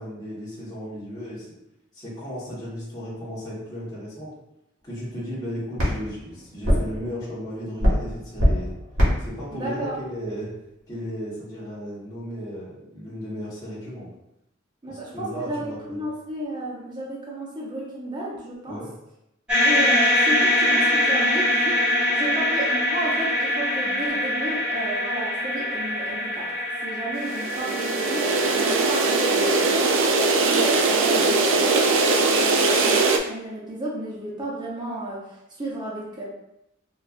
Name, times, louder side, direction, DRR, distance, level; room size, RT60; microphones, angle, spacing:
voice 1, 0.0-1.5 1.9-4.3 4.8-8.7 9.2-10.5 10.9-14.1 14.9-16.0 18.7-18.9, equal, 20° left, -10 dB, 1.2 m, -35 dB
sound 1, 4.8-11.2, equal, 85° right, 1.3 m, -26 dB
voice 2, 9.5-10.0 14.8-18.8 19.6-26.5 26.8-30.1 30.4-36.2, right 1 dB, 20° right, -6 dB, 0.7 m, -33 dB
sound 2, 19.5-29.7, left 1 dB, 5° right, 1.3 m, -24 dB
sound 3, 27.2-33.2, right 3 dB, 65° right, 0.4 m, -21 dB
4.2 x 2.4 x 2.4 m, 0.84 s
head